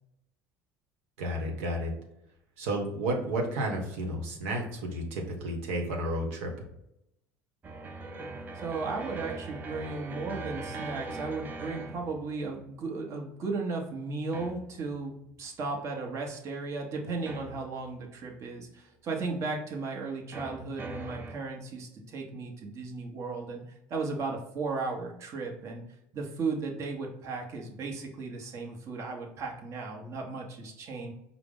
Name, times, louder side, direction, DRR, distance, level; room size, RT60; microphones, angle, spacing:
voice 1, 1.2-1.9 2.6-6.7, right 1 dB, 85° right, 1 dB, 0.9 m, -32 dB
sound 1, 7.6-12.7 14.3-15.0 17.3-18.0 20.3-21.3, right 3 dB, 25° right, 0.5 m, -41 dB
voice 2, 8.5-23.6 23.9-25.8 26.1-31.1, right 3 dB, 45° right, 0 dB, 1.0 m, -35 dB
4.7 x 2.0 x 3.6 m, 0.82 s
supercardioid pair, 105°, 7 cm